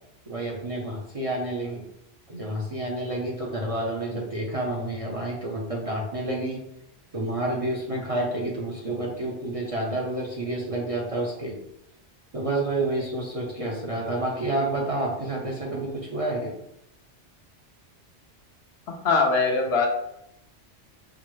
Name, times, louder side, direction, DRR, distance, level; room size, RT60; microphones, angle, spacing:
voice 1, 0.3-1.8 2.3-6.6 7.1-11.5 12.3-16.5, right 1 dB, 35° right, -3 dB, 0.6 m, -29 dB
voice 2, 18.9-19.9, left 4 dB, 65° left, 0 dB, 0.9 m, -22 dB
5.9 x 2.0 x 3.0 m, 0.80 s
omnidirectional pair, 1.2 m